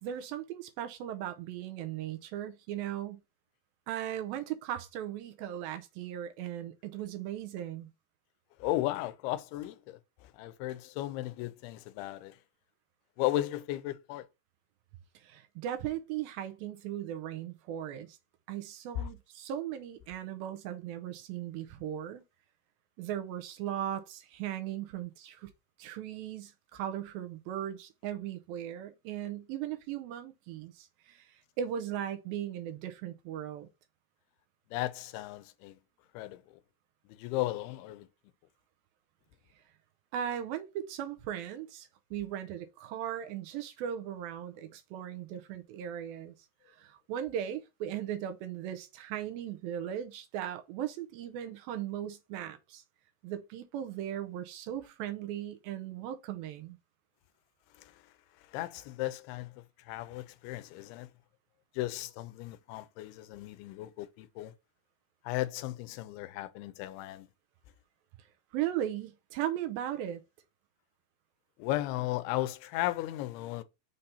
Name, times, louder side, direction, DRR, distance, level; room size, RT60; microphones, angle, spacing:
voice 1, 0.0-3.2 3.9-7.9 15.2-18.2 18.5-22.2 23.0-25.5 25.8-33.7 40.1-46.3 46.7-52.8 53.2-56.8 68.5-70.2, right 10 dB, 80° right, 2.3 m, -38 dB
voice 2, 8.6-12.4 13.2-14.3 19.0-19.1 34.7-35.8 36.1-36.4 37.1-38.1 57.8-58.0 58.5-61.1 61.7-64.5 65.2-67.3 71.6-73.6, left 15 dB, 90° left, 2.6 m, -35 dB
6.5 x 2.8 x 5.6 m
omnidirectional pair, 4.5 m